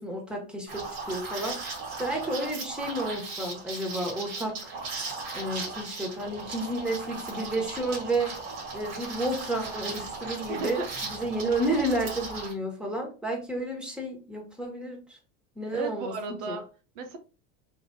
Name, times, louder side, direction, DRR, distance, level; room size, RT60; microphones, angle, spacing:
voice 1, 0.0-1.7 2.0-4.7 5.3-8.3 8.7-10.8 11.1-15.2 15.5-16.1 16.5-16.6, right 1 dB, ahead, 1.5 m, -31 dB
Liquid, 0.7-12.5, right 3 dB, 45° right, 2.0 m, -37 dB
voice 2, 10.5-10.9 15.7-16.7 17.0-17.2, right 3 dB, 65° right, 0.9 m, -34 dB
3.8 x 3.2 x 2.7 m
hypercardioid pair, 90°, 44 cm